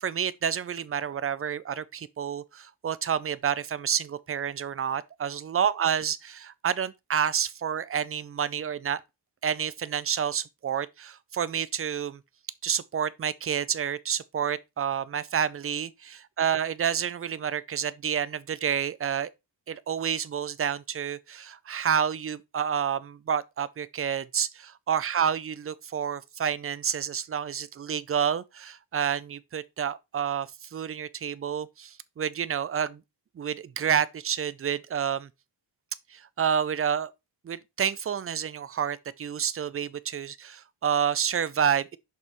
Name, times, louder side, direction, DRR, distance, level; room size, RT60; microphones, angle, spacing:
voice 1, 0.0-9.0 9.4-12.2 12.6-19.3 19.7-33.0 33.4-35.3 36.1-37.1 37.4-42.0, right 8 dB, 35° right, 0.4 m, -29 dB
6.7 x 5.4 x 3.0 m
wide cardioid pair, 125°, 44 cm